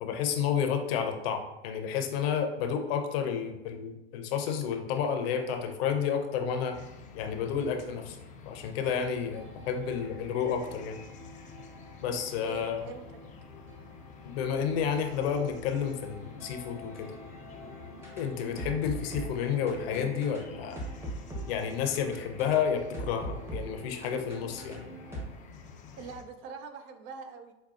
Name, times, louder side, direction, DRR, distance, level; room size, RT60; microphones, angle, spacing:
voice 1, 0.0-6.8 7.1-8.2 8.5-11.0 12.0-12.8 14.2-17.2 18.2-20.8 21.5-24.9, left 7 dB, 65° left, 6 dB, 0.6 m, -31 dB
sound 1, 6.7-26.2, left 5 dB, 25° left, 0.4 m, -49 dB
sound 2, 9.3-25.2, right 1 dB, 10° right, 0.9 m, -44 dB
voice 2, 12.1-13.2 26.0-27.5, right 5 dB, 50° right, 7 dB, 0.6 m, -43 dB
5.1 x 2.3 x 2.4 m, 0.96 s
hypercardioid pair, 100°, 33 cm